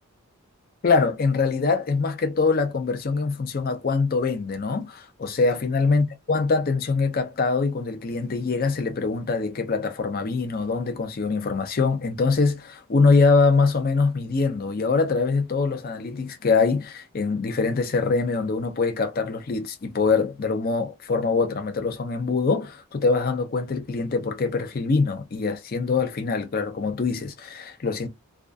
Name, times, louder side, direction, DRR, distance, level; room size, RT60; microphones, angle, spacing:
voice 1, 0.8-28.1, left 4 dB, 40° left, 0.4 m, -23 dB
2.4 x 2.2 x 2.4 m
head